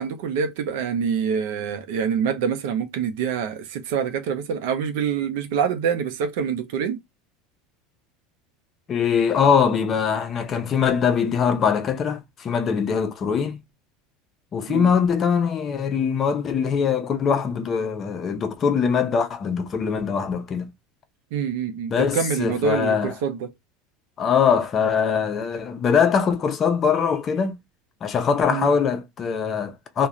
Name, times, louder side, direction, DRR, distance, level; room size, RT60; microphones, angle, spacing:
voice 1, 0.0-7.0 14.7-14.9 21.3-23.5 28.5-28.7, right 7 dB, 75° right, 0.6 m, -26 dB
voice 2, 8.9-13.6 14.5-20.7 21.9-23.1 24.2-27.6 28.0-30.1, left 6 dB, 35° left, 0.6 m, -22 dB
2.4 x 2.2 x 2.9 m
supercardioid pair, 115°, 0 cm